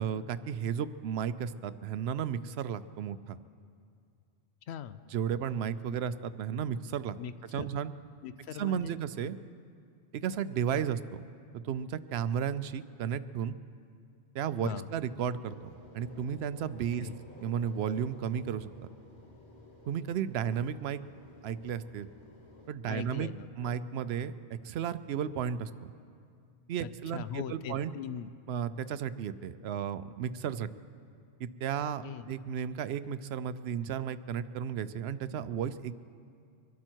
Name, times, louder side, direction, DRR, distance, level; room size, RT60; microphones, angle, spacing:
voice 1, 0.0-3.4 5.1-7.2 7.5-7.9 8.6-9.4 10.1-11.2 11.5-13.6 14.3-15.6 15.9-17.1 17.4-18.7 19.9-21.0 21.4-22.1 22.7-23.3 23.6-25.9 26.7-27.9 28.5-30.7 31.4-35.9, right 8 dB, 75° right, 14 dB, 0.8 m, -33 dB
voice 2, 4.7-5.0 7.2-7.7 8.2-9.0 14.6-14.9 17.0-17.2 22.9-23.8 27.1-28.3 32.0-32.3, left 8 dB, 85° left, 13 dB, 0.9 m, -40 dB
sound 1, 15.5-22.7, left 1 dB, 50° left, 1.9 m, -54 dB
24.0 x 12.0 x 4.5 m, 2.3 s
omnidirectional pair, 1.1 m